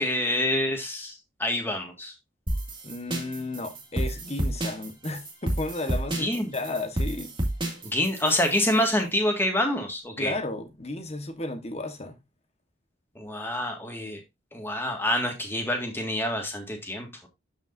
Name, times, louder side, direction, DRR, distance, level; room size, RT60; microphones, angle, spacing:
voice 1, 0.0-2.1 6.1-6.5 7.8-10.3 13.2-14.2 14.5-17.3, left 1 dB, 10° left, 1.9 m, -27 dB
sound 1, 2.5-8.8, right 1 dB, 25° right, 2.2 m, -30 dB
voice 2, 2.8-7.3 10.2-12.2, left 2 dB, 35° left, 1.3 m, -33 dB
12.0 x 5.2 x 2.6 m
head